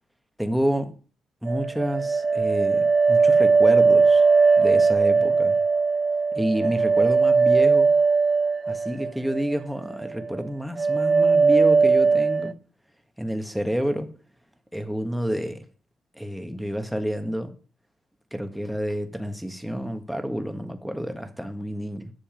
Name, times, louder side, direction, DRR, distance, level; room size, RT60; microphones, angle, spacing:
voice 1, 0.4-0.9 1.4-4.2 4.6-5.6 6.3-7.9 8.7-12.5 13.2-14.1 14.7-15.6 16.1-17.5 18.3-22.1, equal, ahead, 1.5 m, -29 dB
sound 1, 1.5-9.6 9.9-10.5 10.8-12.5, right 4 dB, 35° right, 0.4 m, -19 dB
10.5 x 7.0 x 5.2 m
cardioid pair, 90°, 0 cm